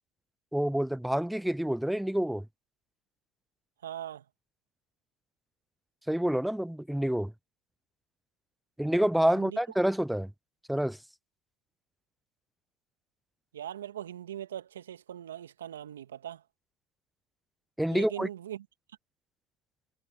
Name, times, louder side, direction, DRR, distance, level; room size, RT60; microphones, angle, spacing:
voice 1, 0.5-2.5 6.1-7.3 8.8-10.3 10.7-11.0 17.8-18.3, right 1 dB, 5° right, 0.4 m, -28 dB
voice 2, 3.8-4.2 9.3-9.6 13.5-16.4 17.9-18.6, right 11 dB, 85° right, 1.7 m, -40 dB
hypercardioid pair, 70°, 0 cm